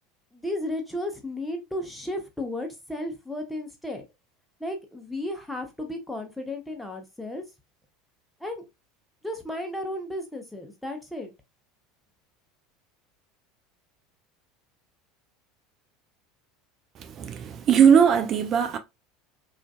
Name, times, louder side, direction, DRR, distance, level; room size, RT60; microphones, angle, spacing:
voice 1, 0.3-4.0 4.6-7.4 8.4-8.6 9.2-11.3, left 1 dB, 5° left, 0.7 m, -34 dB
voice 2, 17.2-18.8, right 7 dB, 35° right, 0.3 m, -19 dB
2.4 x 2.4 x 2.3 m
figure-of-eight pair, 75°, 0 cm